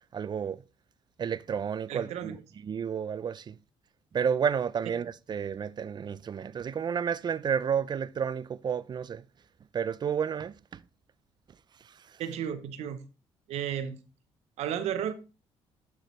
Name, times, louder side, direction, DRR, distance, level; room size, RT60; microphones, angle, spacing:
voice 1, 0.1-0.6 1.2-2.4 2.6-3.6 4.1-9.2 9.7-10.8 11.8-12.2, right 7 dB, 40° right, 0.4 m, -31 dB
voice 2, 1.9-2.4 12.2-13.0 13.5-14.0 14.6-15.1, right 9 dB, 75° right, 0.8 m, -33 dB
11.5 x 4.7 x 3.1 m
supercardioid pair, 75°, 11 cm